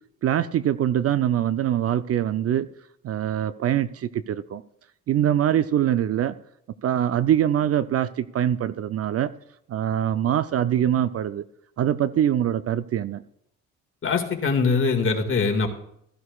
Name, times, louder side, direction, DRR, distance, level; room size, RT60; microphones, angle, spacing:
voice 1, 0.2-2.7 3.0-4.6 5.1-6.3 6.8-9.3 9.7-11.5 11.8-13.2, right 10 dB, 45° right, 14 dB, 0.5 m, -23 dB
voice 2, 14.0-15.7, left 4 dB, 35° left, 3 dB, 2.0 m, -22 dB
15.0 x 11.0 x 2.4 m, 0.74 s
supercardioid pair, 75°, 34 cm